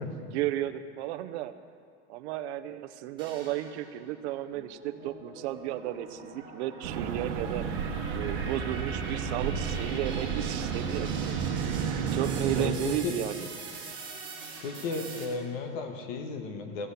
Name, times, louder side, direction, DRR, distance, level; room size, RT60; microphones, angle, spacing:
voice 1, 0.3-1.5 2.1-7.6 8.1-11.4 12.1-13.5, right 13 dB, 70° right, 12 dB, 0.6 m, -34 dB
sound 1, 3.2-4.0 4.5-15.2, right 3 dB, 15° right, 2.2 m, -43 dB
sound 2, 6.8-12.7, right 6 dB, 90° right, 1.1 m, -31 dB
voice 2, 12.5-13.2 14.6-16.9, left 4 dB, 55° left, 5 dB, 1.2 m, -34 dB
15.5 x 7.9 x 6.7 m, 2.2 s
supercardioid pair, 180°, 35 cm